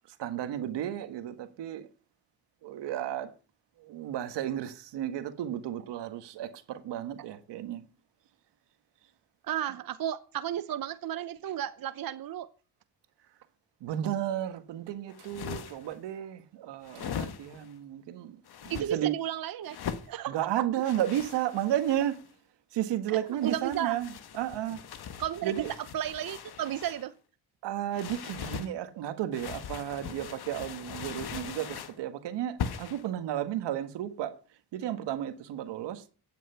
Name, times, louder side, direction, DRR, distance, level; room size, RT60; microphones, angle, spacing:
voice 1, 0.2-1.9 2.6-3.3 3.8-7.8 13.8-18.4 18.6-19.2 20.3-22.2 22.7-24.8 25.4-25.7 27.6-34.4 34.7-36.1, right 11 dB, 85° right, 1.6 m, -33 dB
voice 2, 9.5-12.5 18.7-19.8 20.1-20.4 23.1-23.9 25.2-25.5 25.9-27.1, right 11 dB, 55° right, 0.9 m, -33 dB
sound 1, 15.1-16.0 16.8-17.7 18.5-18.9 19.6-20.1 20.8-22.3 23.3-27.1 27.9-28.7 29.3-32.0 32.6-33.1, left 8 dB, 65° left, 1.5 m, -40 dB
15.5 x 9.3 x 5.7 m
cardioid pair, 70°, 41 cm